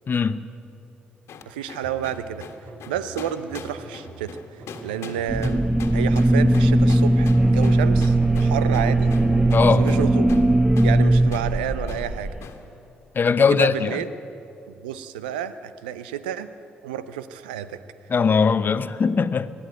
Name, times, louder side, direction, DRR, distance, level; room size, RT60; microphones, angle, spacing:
voice 1, 0.1-0.4 9.5-9.9 13.1-14.0 18.1-19.5, left 5 dB, 45° left, 0.8 m, -20 dB
sound 1, 1.3-10.5 10.8-11.0 11.3-11.5 11.9-12.1 12.4-12.6, left 6 dB, 65° left, 1.6 m, -40 dB
voice 2, 1.5-2.4 2.9-4.4 4.8-5.6 5.9-9.1 9.8-10.3 10.8-12.3 13.5-14.1 14.7-16.5 16.8-17.8, right 10 dB, 85° right, 0.6 m, -30 dB
sound 2, 1.8-5.7 6.3-10.2, right 3 dB, 55° right, 3.5 m, -44 dB
Demon Lair, 5.3-12.4, right 1 dB, 10° right, 0.7 m, -19 dB
20.5 x 14.0 x 9.3 m
hypercardioid pair, 45°, 5 cm